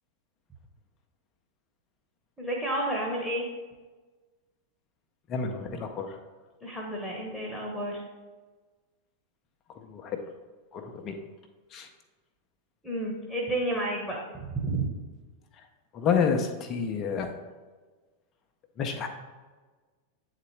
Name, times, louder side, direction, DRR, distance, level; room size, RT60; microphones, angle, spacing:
voice 1, 2.4-3.5 6.6-8.0 12.8-14.8, right 1 dB, ahead, -2 dB, 1.2 m, -31 dB
voice 2, 5.3-6.2 9.7-10.2 10.7-11.2 11.7-11.9 15.5-15.6 15.9-17.4 18.8-19.1, left 6 dB, 30° left, 5 dB, 0.7 m, -29 dB
8.3 x 4.1 x 3.2 m, 1.3 s
figure-of-eight pair, 90°, 0 cm